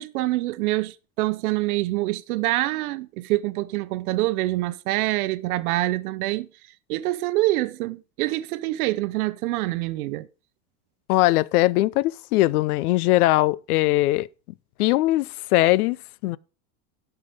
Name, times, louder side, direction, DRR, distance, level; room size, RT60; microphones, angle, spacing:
voice 1, 0.0-6.5 6.9-10.3, right 18 dB, 80° right, 0.8 m, -25 dB
voice 2, 11.1-14.3 14.8-16.0 16.2-16.4, left 17 dB, 85° left, 0.7 m, -20 dB
12.0 x 5.9 x 5.3 m
supercardioid pair, 170°, 43 cm